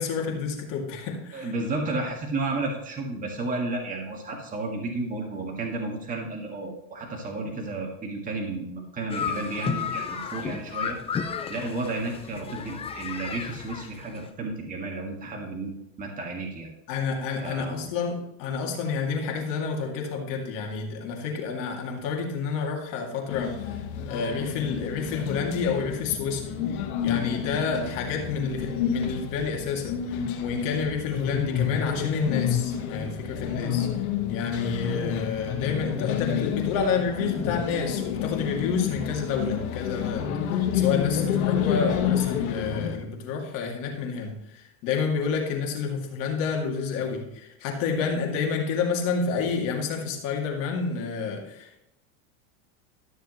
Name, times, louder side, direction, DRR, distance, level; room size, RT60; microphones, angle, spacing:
voice 1, 0.0-1.5 16.9-51.8, left 5 dB, 50° left, 2.5 m, -29 dB
voice 2, 1.3-11.0 11.5-16.7 17.4-17.9, right 2 dB, 20° right, 1.7 m, -32 dB
sound 1, 9.1-14.3, left 6 dB, 15° left, 0.5 m, -33 dB
sound 2, 23.3-43.0, left 9 dB, 75° left, 1.8 m, -29 dB
13.0 x 6.9 x 3.1 m
supercardioid pair, 140°, 43 cm